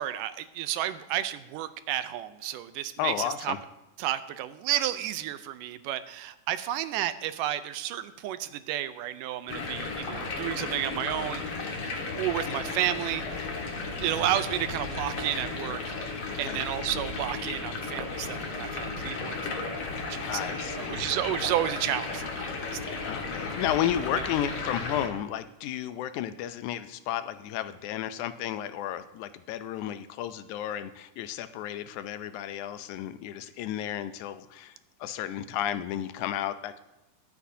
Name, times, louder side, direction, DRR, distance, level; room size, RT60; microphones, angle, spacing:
voice 1, 0.0-3.5 4.0-11.4 12.2-13.2 14.0-19.8 20.1-22.8 24.1-24.3, right 12 dB, 85° right, 12 dB, 2.2 m, -32 dB
voice 2, 3.0-3.6 12.5-12.6 16.4-16.7 20.2-21.0 23.0-36.8, left 11 dB, 80° left, 12 dB, 1.9 m, -33 dB
sound 1, 9.5-25.1, left 3 dB, 50° left, 2.0 m, -34 dB
23.0 x 8.4 x 2.7 m, 0.99 s
omnidirectional pair, 3.8 m